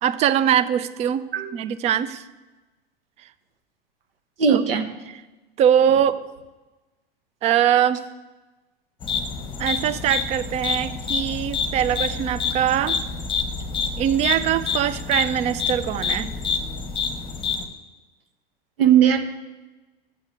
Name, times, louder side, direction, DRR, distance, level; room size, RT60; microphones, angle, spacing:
voice 1, 0.0-2.2 4.5-4.6 5.6-6.2 7.4-8.0 9.6-13.0 14.0-16.3, right 10 dB, 25° right, 14 dB, 0.3 m, -22 dB
voice 2, 4.4-4.8 18.8-19.2, right 8 dB, 80° right, 9 dB, 0.9 m, -18 dB
sound 1, 9.0-17.7, left 5 dB, 15° left, 1.0 m, -28 dB
7.2 x 6.7 x 6.3 m, 1.2 s
hypercardioid pair, 95°, 29 cm